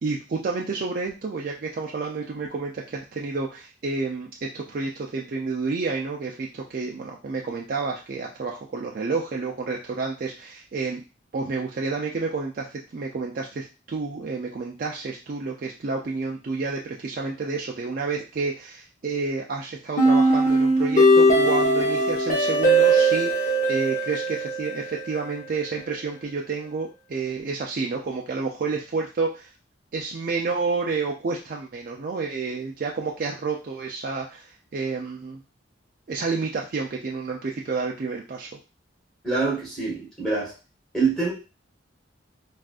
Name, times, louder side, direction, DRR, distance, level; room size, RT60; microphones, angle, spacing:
voice 1, 0.0-11.0 11.3-29.5 29.9-35.4 36.1-38.5, right 4 dB, 45° right, -1 dB, 0.4 m, -30 dB
sound 1, 20.0-25.0, right 1 dB, 40° left, 0.8 m, -19 dB
voice 2, 39.2-40.5 40.9-41.3, right 4 dB, ahead, -8 dB, 1.5 m, -25 dB
3.5 x 2.4 x 2.4 m, 0.31 s
head